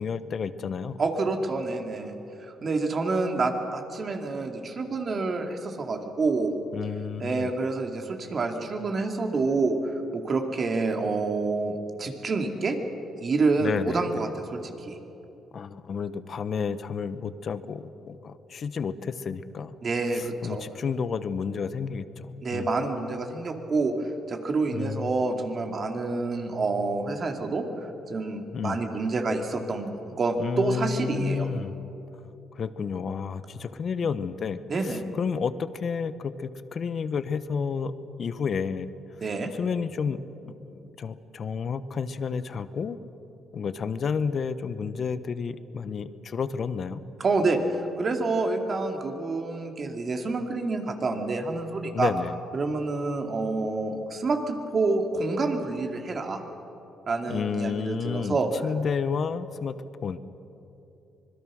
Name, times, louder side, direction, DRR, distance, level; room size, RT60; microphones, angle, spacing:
voice 1, 0.0-1.0 6.7-7.5 13.6-14.2 15.5-19.7 20.1-22.7 24.7-25.1 28.5-28.8 30.4-31.8 32.5-37.9 38.2-38.9 39.6-43.0 43.5-47.0 51.9-52.4 57.3-59.8 60.0-60.2, left 6 dB, 50° left, 13 dB, 1.0 m, -31 dB
voice 2, 1.0-6.5 7.2-12.8 13.2-15.0 19.8-20.6 22.4-31.5 34.7-35.0 39.2-39.5 47.2-52.1 52.5-56.4 57.1-58.5, right 3 dB, 45° right, 4 dB, 2.6 m, -28 dB
25.5 x 21.5 x 6.4 m, 2.9 s
cardioid pair, 90°, 0 cm